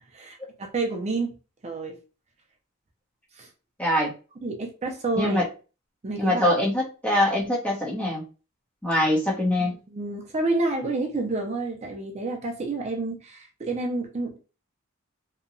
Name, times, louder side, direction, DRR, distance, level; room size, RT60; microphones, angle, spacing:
voice 1, 0.1-1.4 1.6-2.0 3.4-3.5 4.4-5.4 6.0-6.5 9.6-14.4, right 2 dB, 30° right, 2 dB, 0.4 m, -29 dB
voice 2, 3.8-4.1 5.2-5.4 6.2-8.2 8.8-9.7, left 1 dB, 5° left, -5 dB, 0.8 m, -23 dB
2.8 x 2.2 x 2.5 m, 0.34 s
head